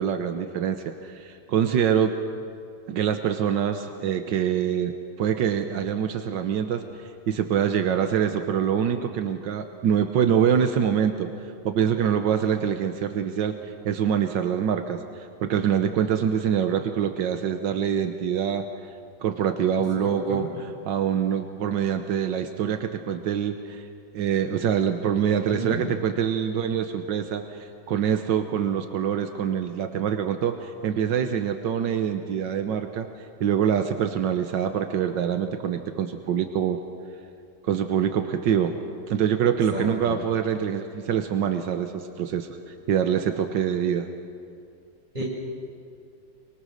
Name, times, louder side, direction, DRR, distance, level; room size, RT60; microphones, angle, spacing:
voice 1, 0.0-2.2 2.9-4.9 5.2-11.3 11.6-13.6 13.8-15.0 15.4-18.7 19.2-20.4 20.8-23.8 24.1-33.1 33.4-36.8 37.6-38.8 39.1-44.1, right 8 dB, 85° right, 7 dB, 1.6 m, -25 dB
voice 2, 19.9-20.5 25.3-25.8 39.7-40.1 45.1-45.2, right 2 dB, 25° right, -3 dB, 6.0 m, -32 dB
24.0 x 23.5 x 6.5 m, 2.4 s
omnidirectional pair, 1.9 m